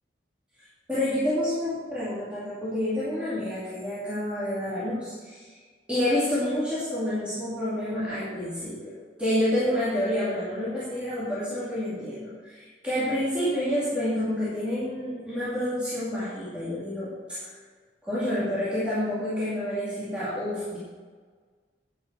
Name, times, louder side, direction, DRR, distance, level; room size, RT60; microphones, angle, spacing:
voice 1, 0.9-5.5 5.9-8.9 9.2-17.5 18.0-20.8, left 1 dB, 5° right, -12 dB, 2.5 m, -28 dB
9.6 x 7.7 x 4.7 m, 1.5 s
head